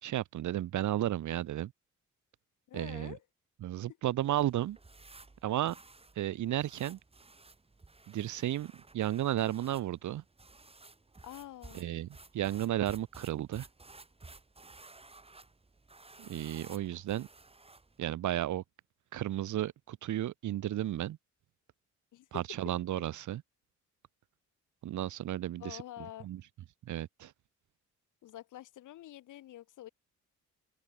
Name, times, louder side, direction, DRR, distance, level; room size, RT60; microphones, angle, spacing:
voice 1, 0.0-1.7 2.7-3.2 3.6-4.8 5.4-5.8 6.1-7.0 8.1-10.2 11.7-12.1 12.3-13.7 16.2-17.3 18.0-18.6 19.1-21.2 22.3-23.4 24.8-25.8 26.2-26.4 26.8-27.3, right 13 dB, 75° right, 1.5 m, -33 dB
voice 2, 2.7-3.2 11.2-11.9 22.1-22.6 25.6-26.3 28.2-29.9, left 14 dB, 85° left, 2.9 m, -47 dB
sound 1, 4.2-18.0, right 3 dB, 20° right, 5.3 m, -55 dB
open air
cardioid pair, 105°, 30 cm